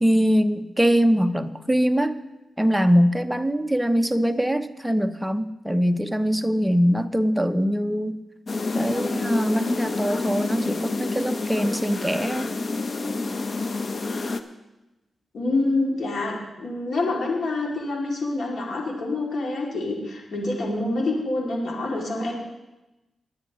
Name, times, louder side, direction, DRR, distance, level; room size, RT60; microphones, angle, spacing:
voice 1, 0.0-2.1 2.6-8.2 8.7-12.5, equal, 5° right, 8 dB, 0.7 m, -22 dB
sound 1, 8.5-14.4, left 3 dB, 45° left, 0.8 m, -28 dB
voice 2, 15.3-22.3, left 2 dB, 70° left, -2 dB, 2.6 m, -26 dB
19.5 x 10.0 x 3.1 m, 1.0 s
cardioid pair, 90°, 0 cm